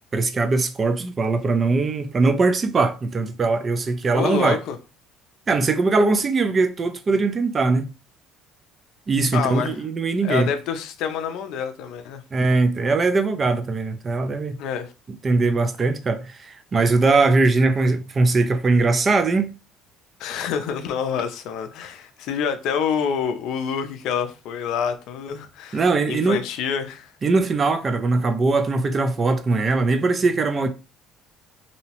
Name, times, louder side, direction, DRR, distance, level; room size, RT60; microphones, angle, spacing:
voice 1, 0.1-4.6 5.5-7.9 9.1-10.5 12.3-14.6 15.2-19.5 25.7-26.4 27.2-30.7, right 3 dB, 25° right, 0.3 m, -21 dB
voice 2, 4.1-4.8 9.3-9.8 10.2-12.2 14.6-14.9 20.2-27.1, left 7 dB, 65° left, 0.4 m, -27 dB
2.7 x 2.0 x 2.8 m
cardioid pair, 140°, 0 cm